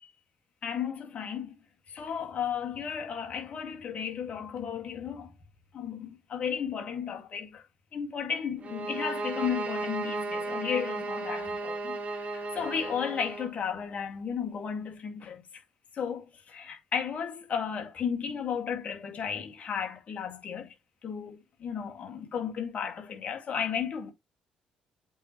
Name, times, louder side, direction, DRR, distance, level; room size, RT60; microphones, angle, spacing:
voice 1, 0.6-1.5 1.9-5.3 5.7-7.6 7.9-15.4 15.9-20.7 21.0-24.1, left 7 dB, 50° left, 2.2 m, -34 dB
sound 1, 8.6-13.5, right 3 dB, 45° right, 1.7 m, -34 dB
8.1 x 4.0 x 3.2 m
hypercardioid pair, 50°, 3 cm